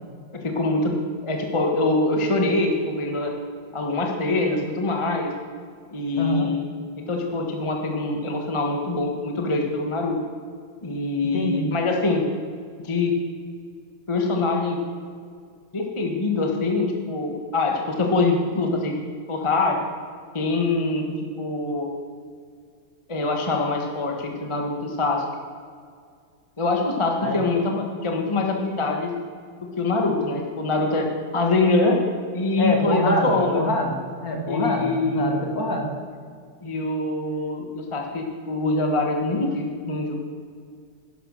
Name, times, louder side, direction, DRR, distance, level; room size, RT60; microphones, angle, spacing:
voice 1, 0.4-0.9 1.2-3.3 3.7-5.3 5.9-6.7 7.0-10.2 10.8-12.2 12.8-13.1 14.1-14.8 15.7-18.9 19.3-19.8 20.3-21.9 23.1-25.2 26.6-29.1 29.8-31.1 31.3-32.0 32.3-33.7 34.5-35.4 36.6-40.1, left 2 dB, 15° left, 1 dB, 1.2 m, -24 dB
voice 2, 6.2-6.5 11.3-11.6 27.2-27.4 32.6-35.9, left 1 dB, 45° left, 2 dB, 2.1 m, -25 dB
12.0 x 11.0 x 6.4 m, 2.1 s
omnidirectional pair, 2.3 m